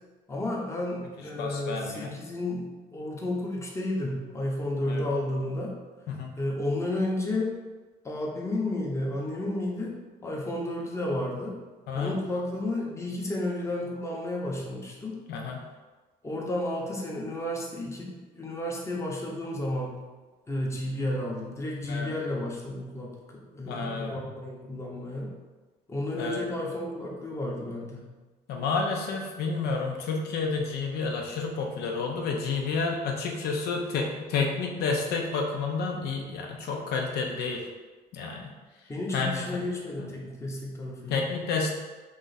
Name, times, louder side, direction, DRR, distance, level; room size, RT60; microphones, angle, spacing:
voice 1, 0.3-5.8 6.4-7.5 8.0-10.0 10.2-11.6 11.9-15.2 16.2-20.0 20.5-25.3 25.9-28.1 38.9-41.2, left 1 dB, 15° left, -2 dB, 0.7 m, -32 dB
voice 2, 1.4-2.2 4.9-5.0 6.1-6.3 11.9-12.1 15.3-15.6 21.9-22.1 23.7-24.1 26.2-26.4 28.5-37.6 38.1-38.5 39.1-39.4 40.0-40.1 41.1-41.7, left 4 dB, 70° left, 1 dB, 0.5 m, -30 dB
3.1 x 2.5 x 3.9 m, 1.3 s
cardioid pair, 110°, 17 cm